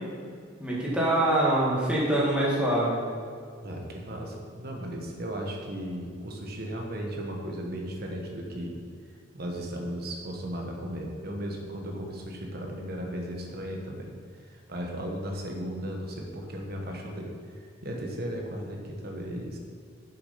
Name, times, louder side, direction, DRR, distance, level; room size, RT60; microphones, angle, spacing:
voice 1, 0.6-3.0, right 1 dB, 5° right, -6 dB, 1.9 m, -24 dB
voice 2, 3.6-8.8 9.1-19.6, equal, 55° right, 1 dB, 1.3 m, -36 dB
7.1 x 6.5 x 5.7 m, 2.1 s
head